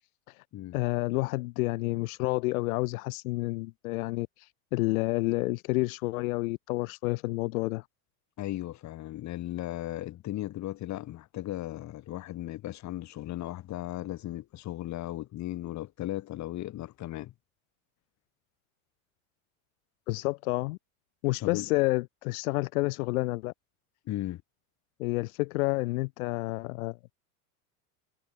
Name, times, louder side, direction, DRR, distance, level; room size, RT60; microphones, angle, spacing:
voice 1, 0.7-4.3 4.7-7.8 20.1-20.8 21.2-23.5 25.0-27.1, left 22 dB, 80° left, 2.8 m, -29 dB
voice 2, 8.4-17.3 21.4-21.7 24.1-24.4, left 14 dB, 40° left, 4.3 m, -36 dB
supercardioid pair, 140°, 42 cm